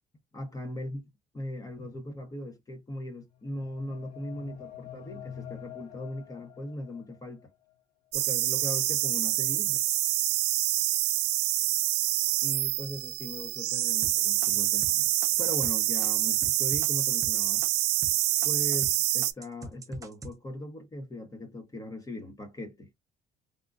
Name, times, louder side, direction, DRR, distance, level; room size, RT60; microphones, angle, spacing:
voice 1, 0.3-1.0 1.3-7.5 8.1-9.8 12.4-15.1 15.4-17.6 18.4-22.9, left 1 dB, 20° left, 0.9 m, -39 dB
sound 1, 3.3-7.2, left 11 dB, 85° left, 1.2 m, -46 dB
sound 2, 8.1-19.3, right 15 dB, 90° right, 0.5 m, -26 dB
sound 3, 14.0-18.9 19.2-20.3, right 2 dB, 20° right, 0.6 m, -43 dB
3.4 x 2.5 x 2.4 m
cardioid pair, 110°, 17 cm